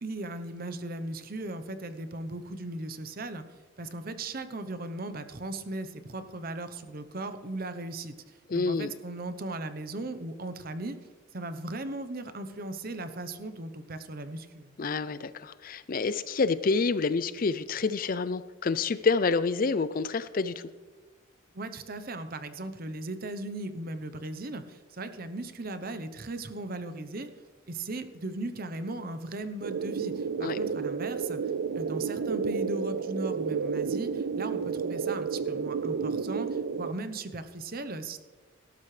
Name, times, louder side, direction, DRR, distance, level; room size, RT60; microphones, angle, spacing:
voice 1, 0.0-3.4 3.8-8.1 8.5-11.0 11.3-14.7 21.5-27.3 27.7-31.4 31.7-38.2, right 2 dB, 45° right, 10 dB, 0.9 m, -37 dB
voice 2, 8.5-8.9 14.8-20.6 30.4-30.6, left 4 dB, 45° left, 14 dB, 0.5 m, -28 dB
sound 1, 29.6-36.9, right 5 dB, 75° right, 0.4 m, -31 dB
18.0 x 12.5 x 3.3 m, 1.3 s
head